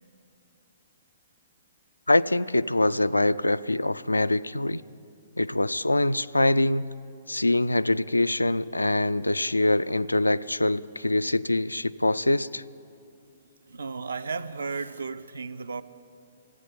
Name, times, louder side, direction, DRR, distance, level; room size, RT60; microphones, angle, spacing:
voice 1, 2.1-4.8 5.4-6.8 7.3-12.6, left 2 dB, 85° left, 0.3 m, -24 dB
voice 2, 13.7-15.8, right 4 dB, 70° right, 0.5 m, -34 dB
14.5 x 9.4 x 9.3 m
figure-of-eight pair, 120°, 0 cm